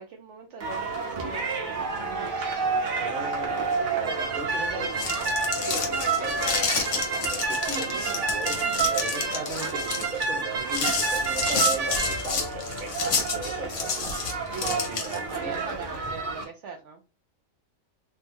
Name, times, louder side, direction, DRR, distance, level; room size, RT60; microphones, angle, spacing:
voice 1, 0.0-1.4 2.0-2.6 7.7-8.2 14.5-17.0, right 5 dB, 70° right, 0.8 m, -40 dB
sound 1, 0.6-16.4, right 4 dB, 85° right, 1.4 m, -29 dB
sound 2, 0.9-4.4 4.9-10.1 10.5-16.1, left 3 dB, 20° left, 0.5 m, -43 dB
voice 2, 3.0-13.9 14.6-15.8, right 2 dB, 40° right, 1.0 m, -38 dB
sound 3, 4.7-15.4, left 5 dB, 65° left, 1.1 m, -30 dB
3.2 x 2.0 x 3.4 m
omnidirectional pair, 1.4 m